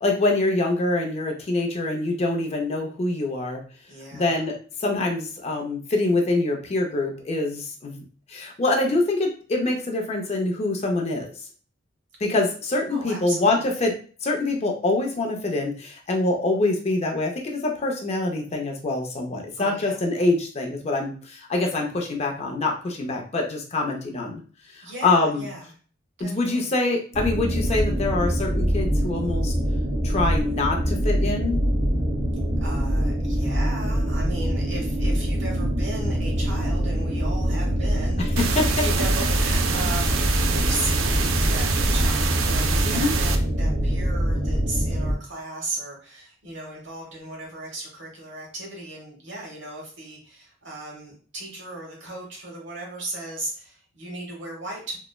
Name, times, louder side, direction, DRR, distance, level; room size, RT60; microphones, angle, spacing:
voice 1, 0.0-3.6 4.1-4.5 4.8-8.0 8.3-11.3 12.2-13.9 14.2-24.4 24.8-25.5 26.2-29.5 30.0-31.6 38.6-38.8 42.8-43.1, left 2 dB, 35° left, 1 dB, 0.4 m, -25 dB
voice 2, 3.9-4.5 12.9-13.9 19.6-20.0 24.8-25.7 26.2-26.7 32.6-38.2 38.8-55.0, right 2 dB, 65° right, -2 dB, 1.1 m, -36 dB
sound 1, 27.1-45.1, equal, 30° right, 0.8 m, -24 dB
sound 2, 38.4-43.4, right 5 dB, 85° right, 0.4 m, -26 dB
3.0 x 2.0 x 2.2 m, 0.41 s
head